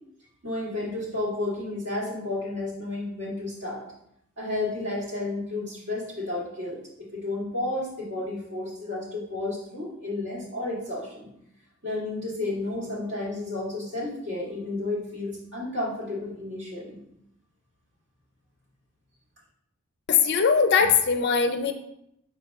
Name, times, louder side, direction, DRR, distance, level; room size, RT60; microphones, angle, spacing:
voice 1, 0.4-3.8 4.4-6.8 7.1-11.3 11.8-17.0, left 2 dB, 50° right, -6 dB, 1.7 m, -32 dB
voice 2, 20.1-21.7, left 6 dB, 50° left, 7 dB, 0.4 m, -21 dB
4.1 x 2.9 x 4.5 m, 0.76 s
head